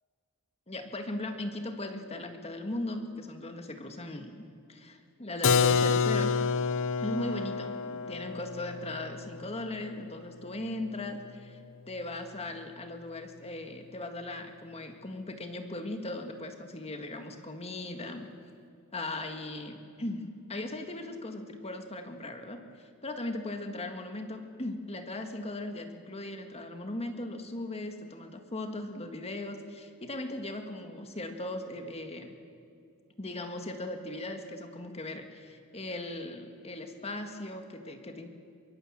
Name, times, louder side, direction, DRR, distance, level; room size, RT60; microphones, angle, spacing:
voice 1, 0.7-4.4 4.7-4.9 5.2-6.4 7.0-11.6 11.9-18.3 18.9-22.6 23.0-32.4 33.2-38.3, left 2 dB, 30° left, 6 dB, 1.8 m, -38 dB
Keyboard (musical), 5.4-11.1, left 5 dB, 60° left, 0.8 m, -29 dB
23.5 x 22.5 x 7.5 m, 2.3 s
head